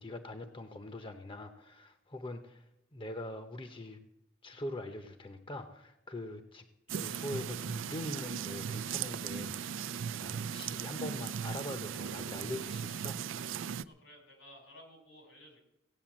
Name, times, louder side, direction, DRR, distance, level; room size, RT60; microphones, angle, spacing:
voice 1, 0.0-2.6 2.9-4.0 4.4-9.8 10.2-13.2, left 1 dB, 25° left, 8 dB, 0.7 m, -43 dB
sound 1, 6.9-13.8, right 7 dB, 90° right, 0.4 m, -38 dB
voice 2, 13.8-15.7, equal, 85° left, 4 dB, 4.0 m, -55 dB
16.5 x 8.3 x 7.3 m, 0.91 s
head